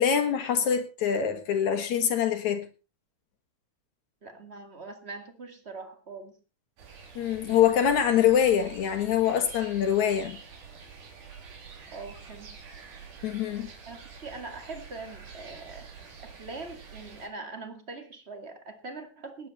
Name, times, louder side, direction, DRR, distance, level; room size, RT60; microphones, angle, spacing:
voice 1, 0.0-2.7 7.2-10.4 13.2-13.7, left 9 dB, 70° left, 2.8 m, -24 dB
voice 2, 4.2-6.3 11.9-12.6 13.9-15.9 16.2-19.5, right 3 dB, 25° right, 1.9 m, -42 dB
sound 1, 6.8-17.3, right 5 dB, 75° right, 4.5 m, -47 dB
19.5 x 9.6 x 4.2 m
omnidirectional pair, 3.6 m